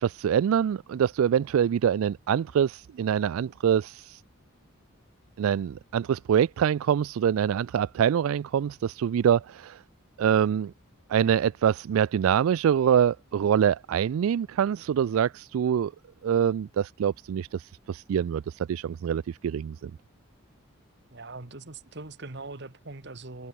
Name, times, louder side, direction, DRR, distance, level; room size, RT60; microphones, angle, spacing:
voice 1, 0.0-4.2 5.4-9.8 10.2-10.7 11.1-15.9 16.2-19.9, right 8 dB, 85° right, 0.3 m, -25 dB
voice 2, 21.1-23.5, right 3 dB, 55° right, 1.5 m, -41 dB
head